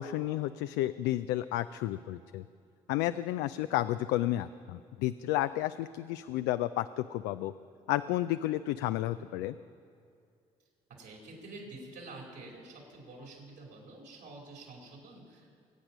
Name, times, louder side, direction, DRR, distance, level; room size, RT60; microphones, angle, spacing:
voice 1, 0.0-2.4 2.9-7.5 7.9-9.6, left 14 dB, 80° left, 12 dB, 0.4 m, -31 dB
voice 2, 11.0-15.5, right 2 dB, 75° right, -2 dB, 5.1 m, -48 dB
23.0 x 8.8 x 6.1 m, 2.4 s
hypercardioid pair, 55°, 18 cm